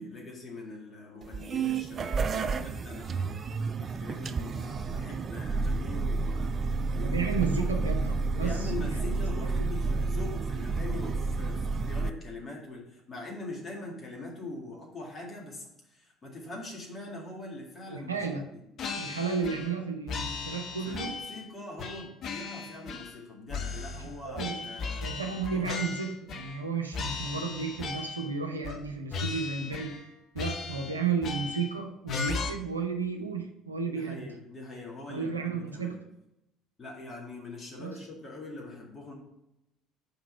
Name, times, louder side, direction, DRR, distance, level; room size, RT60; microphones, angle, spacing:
voice 1, 0.0-3.4 3.8-7.8 8.4-18.3 18.5-18.6 20.8-25.1 25.5-25.7 33.9-36.0 36.8-39.1, left 2 dB, 30° left, -2 dB, 2.0 m, -42 dB
sound 1, 1.2-12.1, right 4 dB, 35° right, 0.3 m, -30 dB
voice 2, 7.0-9.0 17.9-18.5 19.0-21.2 24.0-24.7 25.0-30.1 30.3-34.3 35.1-36.0 37.8-38.0, right 5 dB, 80° right, 4 dB, 0.6 m, -33 dB
sound 2, 18.8-19.8 20.1-21.4 21.8-23.2 23.5-26.7 26.9-28.3 28.6-28.8 29.1-30.1 30.4-31.7 32.1-32.5, left 4 dB, 45° left, 0.7 m, -36 dB
5.2 x 3.9 x 5.8 m, 0.88 s
figure-of-eight pair, 55°, 0 cm